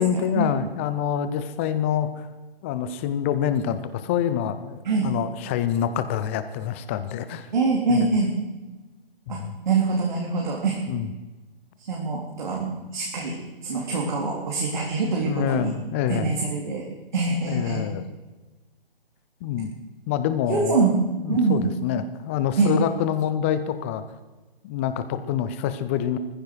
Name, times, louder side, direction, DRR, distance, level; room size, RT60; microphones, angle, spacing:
voice 1, 0.0-2.3 2.6-7.5 7.9-8.1 9.3-9.5 10.9-11.1 15.3-16.3 17.5-18.1 19.4-19.7 20.1-20.8 21.2-24.0 24.6-26.2, left 9 dB, 15° left, 12 dB, 0.6 m, -26 dB
voice 2, 7.5-8.3 9.3-10.8 11.9-15.7 16.1-16.9 17.1-17.9 20.5-21.0 21.3-21.6 22.6-22.7, right 4 dB, 50° right, -2 dB, 3.4 m, -24 dB
20.0 x 15.0 x 4.7 m, 1.2 s
figure-of-eight pair, 135°, 29 cm